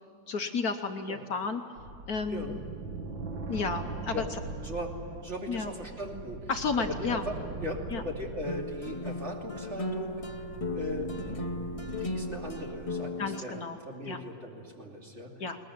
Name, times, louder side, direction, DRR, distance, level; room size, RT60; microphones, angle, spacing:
voice 1, 0.3-1.6 2.1-2.6 3.5-4.2 5.5-5.7 6.5-7.2 7.9-8.0 13.2-13.8 14.1-14.2 15.4-15.6, left 4 dB, 60° left, 6 dB, 1.3 m, -32 dB
sound 1, 1.8-13.0, right 3 dB, 85° right, 2.0 m, -41 dB
voice 2, 4.6-4.9 5.2-10.2 10.7-11.1 12.0-15.3, equal, 35° right, -1 dB, 3.2 m, -38 dB
sound 2, 8.5-13.4, left 2 dB, 25° left, 0.8 m, -36 dB
21.0 x 20.0 x 9.4 m, 2.7 s
omnidirectional pair, 2.0 m